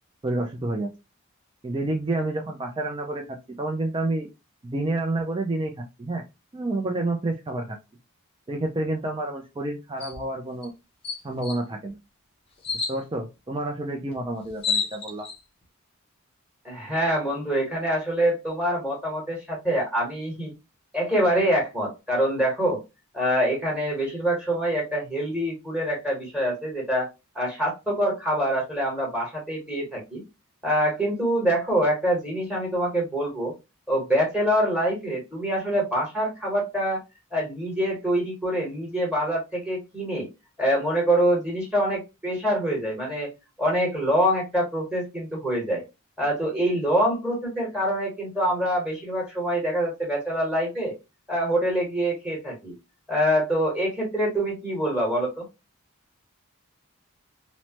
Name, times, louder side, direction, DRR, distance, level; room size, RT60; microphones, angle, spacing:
voice 1, 0.2-0.9 1.6-4.3 4.6-6.2 6.5-7.8 8.5-10.7 11.2-12.0 12.9-15.3, right 2 dB, 20° right, 1 dB, 0.3 m, -29 dB
sound 1, 10.0-10.2 10.6-10.7 11.0-11.6 12.6-13.0 14.1-14.2 14.4-15.4, left 5 dB, 25° left, 0.6 m, -29 dB
voice 2, 16.6-20.5 20.9-22.8 23.1-27.1 27.3-30.2 30.6-33.5 33.9-37.0 37.3-40.3 40.6-43.3 43.6-45.8 46.2-50.9 51.3-52.7 53.1-55.4, equal, 5° right, -2 dB, 1.1 m, -25 dB
3.0 x 2.1 x 2.8 m, 0.25 s
head